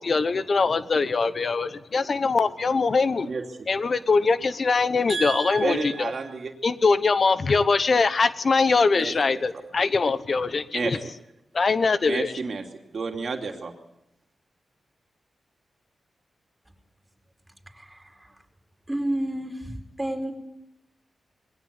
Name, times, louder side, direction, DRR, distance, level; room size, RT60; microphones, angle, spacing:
voice 1, 0.0-3.3 3.7-6.1 6.6-11.0 11.5-12.3, left 4 dB, 55° left, 1.0 m, -22 dB
voice 2, 3.2-3.7 5.1-6.5 8.9-9.7 10.7-11.2 12.0-13.7, right 4 dB, 60° right, 2.8 m, -31 dB
voice 3, 17.7-18.3 18.9-20.3, right 1 dB, 10° right, 4.8 m, -30 dB
21.5 x 17.0 x 9.7 m
cardioid pair, 65°, 0 cm